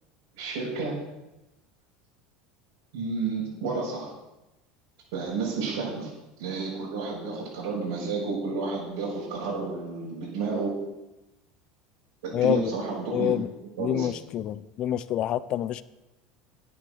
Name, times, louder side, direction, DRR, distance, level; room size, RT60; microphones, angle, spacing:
voice 1, 0.4-1.0 2.9-4.1 5.1-6.1 6.4-10.8 12.2-13.3 13.8-14.2, right 4 dB, 80° right, -7 dB, 6.2 m, -31 dB
voice 2, 12.3-12.7 13.1-13.5 13.8-15.8, left 11 dB, 40° left, 16 dB, 0.6 m, -27 dB
12.0 x 9.4 x 6.5 m, 0.98 s
supercardioid pair, 150°, 2 cm